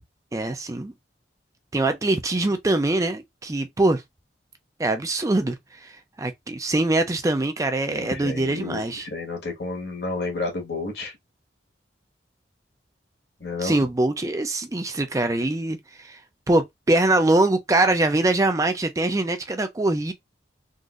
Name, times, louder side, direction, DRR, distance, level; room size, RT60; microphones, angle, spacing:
voice 1, 0.3-0.9 1.7-4.0 4.8-5.6 5.8-9.1 13.6-16.2 16.5-20.1, right 2 dB, 20° right, 0.4 m, -23 dB
voice 2, 7.9-11.1 13.4-13.8, left 3 dB, 65° left, 1.5 m, -31 dB
3.8 x 2.6 x 2.4 m
head